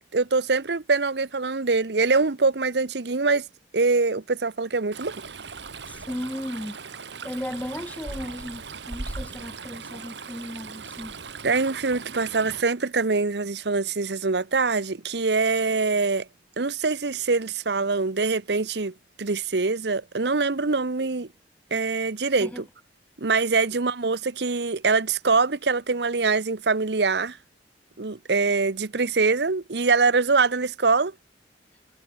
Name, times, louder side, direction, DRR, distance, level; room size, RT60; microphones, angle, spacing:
voice 1, 0.1-3.4 3.7-5.1 11.4-16.3 16.6-21.3 21.7-22.6 23.2-27.4 28.0-31.1, right 4 dB, 70° right, 1.0 m, -24 dB
Stream, 4.9-12.6, right 4 dB, 85° right, 2.0 m, -38 dB
voice 2, 5.9-6.8 7.2-11.1 22.4-22.6, left 1 dB, 10° left, 0.6 m, -35 dB
head